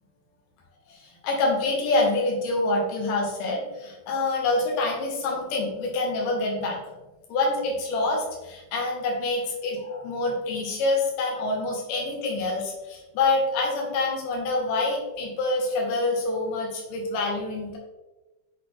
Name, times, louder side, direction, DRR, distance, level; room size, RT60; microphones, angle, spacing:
voice 1, 1.2-6.8 7.3-17.8, left 2 dB, 80° left, -1 dB, 2.9 m, -26 dB
8.2 x 4.1 x 3.2 m, 1.1 s
omnidirectional pair, 3.7 m